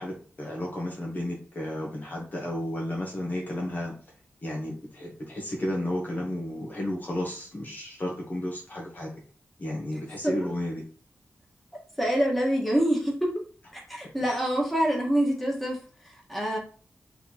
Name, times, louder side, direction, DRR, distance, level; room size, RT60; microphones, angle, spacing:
voice 1, 0.0-3.9 4.4-9.1 9.6-10.8, left 1 dB, 40° left, -2 dB, 1.2 m, -32 dB
voice 2, 12.0-13.3 13.9-15.8 16.3-16.6, equal, ahead, -3 dB, 1.6 m, -25 dB
4.2 x 3.0 x 4.1 m, 0.42 s
wide cardioid pair, 125°, 5 cm